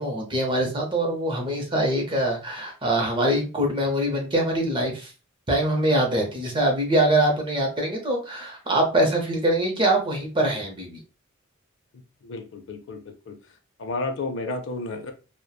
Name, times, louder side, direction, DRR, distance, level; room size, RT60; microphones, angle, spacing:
voice 1, 0.0-5.1 5.5-11.0, right 1 dB, 25° right, 1 dB, 0.6 m, -23 dB
voice 2, 12.2-13.0 13.3-13.4 13.8-15.1, left 2 dB, 60° left, 6 dB, 0.5 m, -31 dB
2.9 x 2.1 x 2.2 m, 0.32 s
head